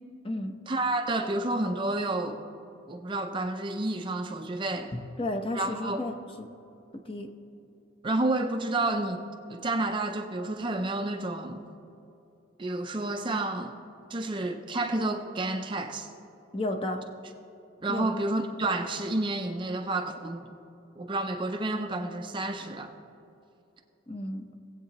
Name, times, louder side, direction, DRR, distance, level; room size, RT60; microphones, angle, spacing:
voice 1, 0.7-2.4 2.9-4.9 5.5-6.0 8.0-9.2 9.5-11.6 12.6-13.7 14.1-16.1 17.8-20.4 21.0-22.9, right 2 dB, 25° right, 5 dB, 0.5 m, -30 dB
voice 2, 4.9-6.5 7.0-7.3 16.5-17.0 17.9-18.1 24.1-24.5, left 1 dB, 25° left, 4 dB, 0.8 m, -33 dB
19.5 x 8.1 x 2.9 m, 2.8 s
head